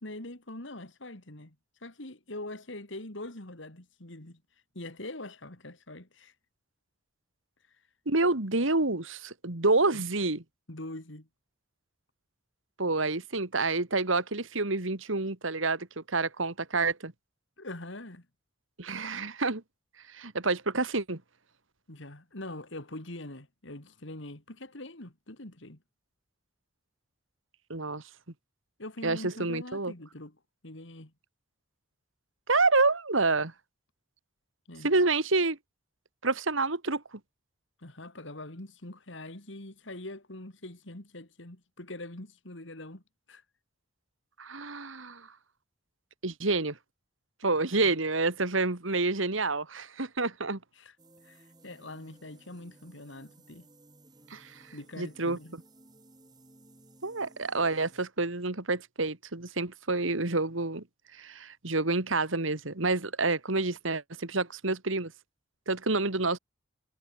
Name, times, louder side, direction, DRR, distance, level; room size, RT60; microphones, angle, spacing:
voice 1, 0.0-1.6 1.8-4.4 4.7-6.3 9.9-10.0 10.7-11.3 17.6-18.3 21.9-25.8 28.8-30.4 30.6-31.1 34.7-34.9 37.8-43.0 43.3-43.4 47.8-47.9 50.8-50.9 51.2-53.7 54.7-55.6, left 1 dB, 70° left, 2.9 m, -43 dB
voice 2, 8.1-10.4 12.8-17.1 18.8-19.6 20.1-21.2 27.7-28.0 29.0-29.9 32.5-33.5 34.8-35.6 36.2-37.0 44.4-45.3 46.2-46.8 47.4-50.6 54.3-54.6 55.0-55.4 57.0-60.8 61.1-65.1 65.7-66.4, right 3 dB, 75° right, 2.2 m, -28 dB
sound 1, 51.0-58.1, right 1 dB, 20° right, 6.1 m, -58 dB
head